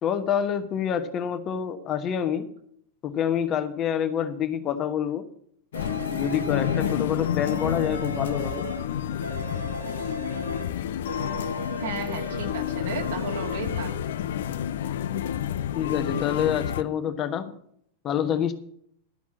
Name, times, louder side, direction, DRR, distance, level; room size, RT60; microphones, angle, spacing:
voice 1, 0.0-2.5 3.0-5.3 5.9-8.7 15.7-17.5 18.0-18.5, left 9 dB, 30° left, 9 dB, 1.2 m, -27 dB
sound 1, 5.7-16.8, left 10 dB, 60° left, 0.5 m, -29 dB
sound 2, 5.7-7.0 7.4-8.9 9.2-10.7 11.1-12.6 12.9-13.9, right 2 dB, 80° right, 1.3 m, -38 dB
voice 2, 11.8-13.9, right 4 dB, 60° right, 2 dB, 2.3 m, -34 dB
12.0 x 6.0 x 7.4 m, 0.66 s
figure-of-eight pair, 90°, 0 cm